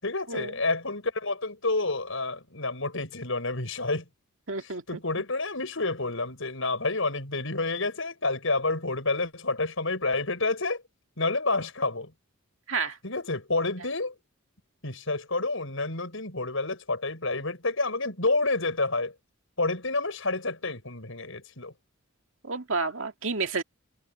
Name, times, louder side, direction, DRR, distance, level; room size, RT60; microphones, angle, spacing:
voice 1, 0.0-4.1 4.9-10.8 11.2-12.1 13.0-14.1 14.8-19.1 19.6-21.7, left 3 dB, 65° left, 6.5 m, -29 dB
voice 2, 4.5-5.0 12.7-13.0 22.4-23.6, right 4 dB, 65° right, 2.3 m, -30 dB
head